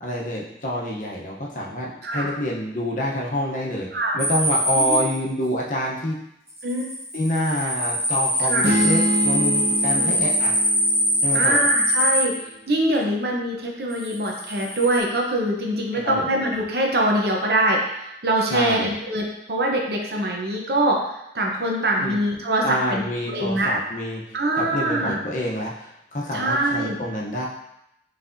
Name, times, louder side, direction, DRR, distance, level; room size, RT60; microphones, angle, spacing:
voice 1, 0.0-3.9 4.1-6.2 7.1-10.5 11.2-11.6 15.9-16.2 18.5-18.9 22.0-22.2 22.6-24.2 24.6-27.5, equal, 45° left, -3 dB, 0.8 m, -27 dB
sound 1, 4.2-5.0 6.5-12.2 13.9-15.0, equal, 15° right, 1.4 m, -23 dB
voice 2, 8.4-8.7 10.0-10.2 11.3-21.1 21.3-23.0 23.3-23.7 24.3-25.2 26.3-27.0, right 1 dB, 65° right, 0 dB, 0.8 m, -23 dB
sound 2, 8.6-12.4, equal, 80° right, 1.0 m, -27 dB
5.7 x 3.3 x 2.6 m, 0.83 s
head